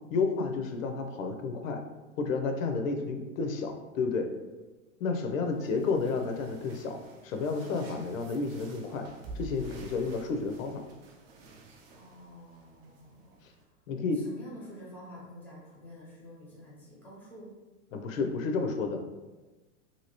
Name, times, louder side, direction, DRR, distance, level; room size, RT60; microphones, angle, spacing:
voice 1, 0.1-1.8 2.2-4.3 5.0-9.1 9.3-10.8 13.9-14.2 17.9-19.0, left 4 dB, 85° left, 5 dB, 0.6 m, -31 dB
sound 1, 5.5-13.6, right 2 dB, 50° right, 0.6 m, -50 dB
voice 2, 5.6-5.9 11.9-13.4 14.1-17.5, equal, 5° left, -6 dB, 0.4 m, -49 dB
2.8 x 2.7 x 2.8 m, 1.2 s
supercardioid pair, 145°, 39 cm